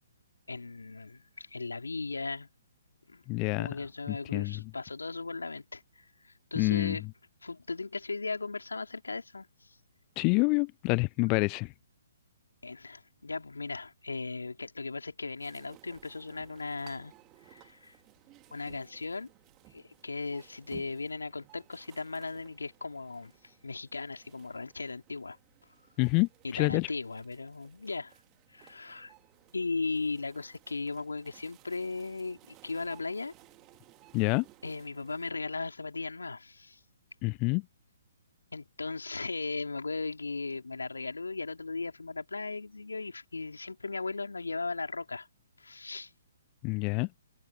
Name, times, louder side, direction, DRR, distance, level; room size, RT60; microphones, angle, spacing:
voice 1, 0.5-2.5 3.1-3.2 3.6-7.0 7.4-9.7 12.6-17.1 17.4-17.9 18.5-19.3 19.7-25.4 26.4-28.1 28.5-29.1 29.5-33.3 34.6-36.8 38.5-45.3 45.6-46.1, left 3 dB, 85° left, 3.3 m, -37 dB
voice 2, 3.3-3.7 4.3-4.6 6.6-7.0 10.2-11.7 26.0-26.9 34.1-34.4 37.2-37.6 46.6-47.1, left 30 dB, 30° left, 0.4 m, -27 dB
sound 1, 15.4-35.3, right 20 dB, 25° right, 3.0 m, -59 dB
figure-of-eight pair, 135°, 0 cm